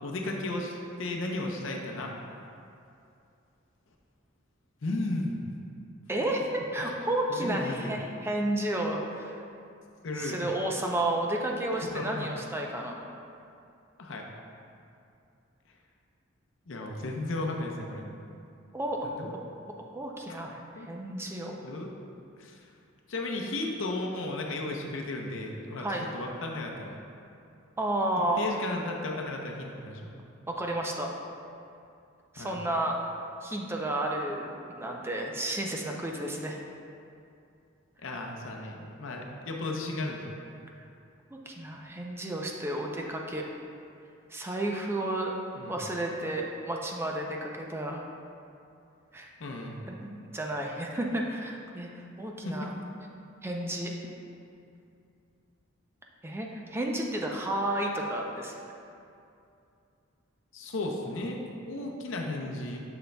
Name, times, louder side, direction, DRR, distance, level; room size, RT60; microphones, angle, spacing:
voice 1, 0.0-2.1 4.8-5.4 7.3-7.9 10.0-10.4 11.7-12.3 14.0-14.3 16.7-18.1 19.2-19.4 20.8-20.9 21.6-21.9 22.4-22.6 23.1-25.9 26.1-27.0 28.4-30.1 32.4-32.6 38.0-40.4 45.5-45.8 49.4-49.8 52.4-52.7 60.5-62.8, left 2 dB, 70° left, 1 dB, 0.7 m, -34 dB
voice 2, 6.1-9.4 10.2-12.9 18.7-19.1 19.9-20.6 20.9-21.6 25.8-26.0 27.8-28.4 30.5-31.1 32.3-32.9 33.4-36.6 41.3-43.4 44.3-45.3 45.7-48.0 49.1-49.3 49.9-52.7 53.4-53.9 56.2-58.5, right 1 dB, 10° right, 0 dB, 0.4 m, -32 dB
6.8 x 6.3 x 2.2 m, 2.6 s
head